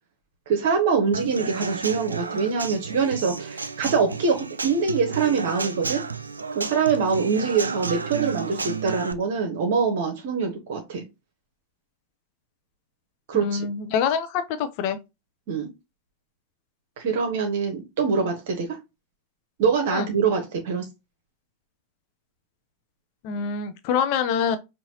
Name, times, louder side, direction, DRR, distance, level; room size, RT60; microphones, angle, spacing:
voice 1, 0.5-6.0 6.5-11.0 13.3-13.7 15.5-15.7 17.0-18.8 19.6-20.9, right 5 dB, 55° right, 1.0 m, -24 dB
Human voice / Acoustic guitar / Drum, 1.1-9.1, right 5 dB, 75° right, 0.4 m, -32 dB
voice 2, 13.3-15.0 19.9-20.1 23.2-24.6, left 7 dB, 45° left, 0.6 m, -25 dB
5.4 x 2.7 x 2.9 m
figure-of-eight pair, 90°, 0 cm